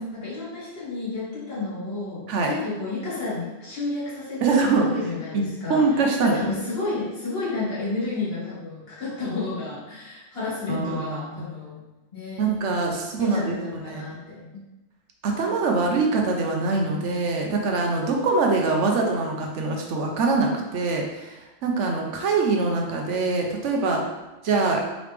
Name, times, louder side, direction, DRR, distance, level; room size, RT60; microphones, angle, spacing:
voice 1, 0.0-11.8 12.1-12.5 12.8-12.9 13.2-14.6, left 3 dB, 55° left, -8 dB, 1.7 m, -31 dB
voice 2, 4.4-4.9 5.3-5.4 5.7-6.4 10.7-11.5 12.4-14.0 15.2-24.0 24.4-24.8, right 3 dB, 80° right, 1 dB, 1.0 m, -23 dB
3.8 x 3.3 x 3.3 m, 1.1 s
omnidirectional pair, 1.2 m